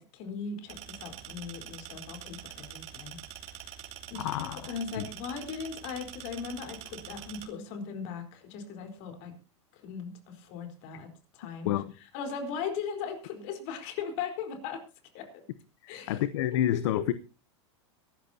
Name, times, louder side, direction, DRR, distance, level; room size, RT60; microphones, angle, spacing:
voice 1, 0.0-3.2 3.4-3.7 4.1-9.3 9.7-11.7 12.1-14.8 15.1-15.4 15.9-16.2 16.7-17.0, left 6 dB, 55° left, 4.2 m, -38 dB
sound 1, 0.7-7.4, right 10 dB, 45° right, 3.2 m, -45 dB
voice 2, 4.1-5.1 11.6-11.9 16.1-17.1, left 12 dB, 70° left, 0.8 m, -29 dB
23.0 x 13.0 x 2.8 m
supercardioid pair, 125°, 15 cm